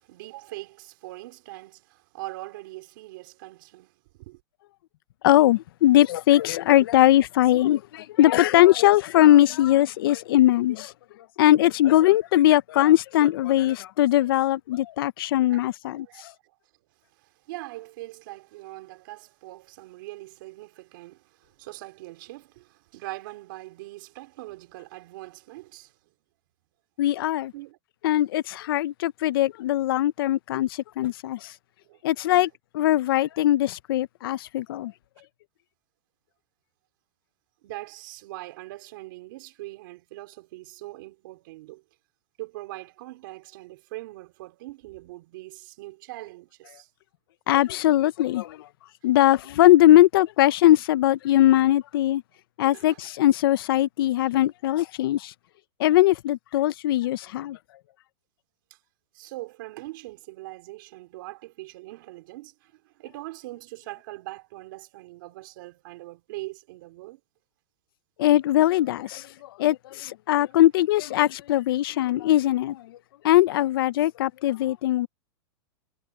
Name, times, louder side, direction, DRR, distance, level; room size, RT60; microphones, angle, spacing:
voice 1, 0.0-4.4 15.5-15.6 16.0-16.5 17.1-26.0 27.5-27.8 31.8-32.0 32.3-32.4 37.6-41.8 42.4-46.9 52.7-53.0 58.7-58.8 59.1-67.2 69.0-69.1, right 19 dB, 50° right, 4.0 m, -42 dB
voice 2, 5.2-10.9 11.4-16.3 27.0-27.5 28.0-31.5 32.0-34.9 47.5-48.6 49.0-52.2 52.6-55.3 55.8-57.6 68.2-72.9 73.2-75.1, left 14 dB, 55° left, 0.8 m, -20 dB
supercardioid pair, 165°, 14 cm